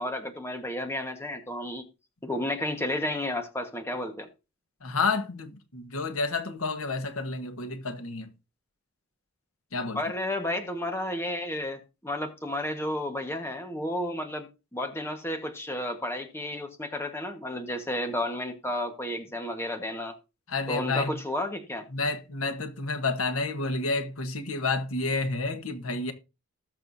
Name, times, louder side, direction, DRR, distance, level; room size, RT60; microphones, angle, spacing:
voice 1, 0.0-1.8 2.2-4.3 9.9-20.1 20.7-21.9, left 1 dB, 10° left, 1.4 m, -32 dB
voice 2, 4.8-8.3 9.7-10.0 20.5-21.2 21.9-26.1, left 3 dB, 75° left, 1.4 m, -30 dB
19.0 x 6.7 x 2.7 m
head